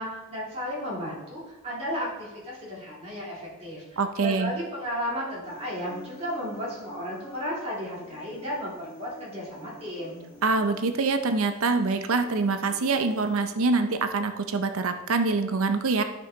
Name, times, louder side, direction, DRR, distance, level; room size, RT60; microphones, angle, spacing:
voice 1, 0.0-10.2, equal, 30° right, -7 dB, 3.3 m, -34 dB
voice 2, 4.0-4.5 10.4-16.0, right 3 dB, 75° right, 8 dB, 0.6 m, -25 dB
Human voice, 5.4-13.4, right 1 dB, 15° left, 3.1 m, -50 dB
13.0 x 5.5 x 3.9 m, 1.1 s
head